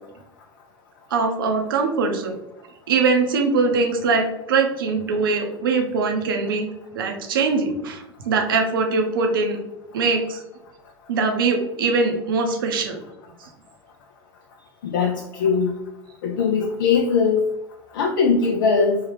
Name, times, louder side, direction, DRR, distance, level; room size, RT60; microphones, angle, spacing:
voice 1, 1.1-2.3 2.9-6.7 6.9-9.6 9.9-10.4 11.1-13.0, right 4 dB, 65° right, 3 dB, 0.6 m, -22 dB
voice 2, 14.8-15.7 16.2-17.4 17.9-19.0, left 5 dB, 60° left, 3 dB, 0.4 m, -20 dB
3.5 x 2.3 x 3.1 m, 0.89 s
figure-of-eight pair, 80°, 12 cm